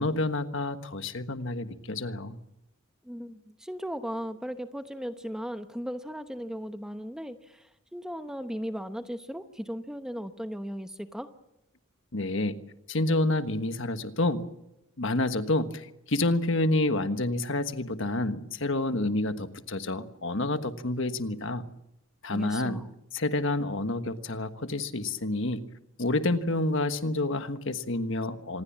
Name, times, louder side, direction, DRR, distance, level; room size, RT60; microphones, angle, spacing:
voice 1, 0.0-2.4 12.1-12.6 12.9-14.4 15.0-21.7 22.2-22.8 23.1-25.6 26.0-28.6, left 2 dB, 60° left, 9 dB, 1.4 m, -28 dB
voice 2, 3.0-11.3 22.3-22.9, equal, 5° right, 8 dB, 0.9 m, -37 dB
26.5 x 20.5 x 7.4 m, 0.87 s
head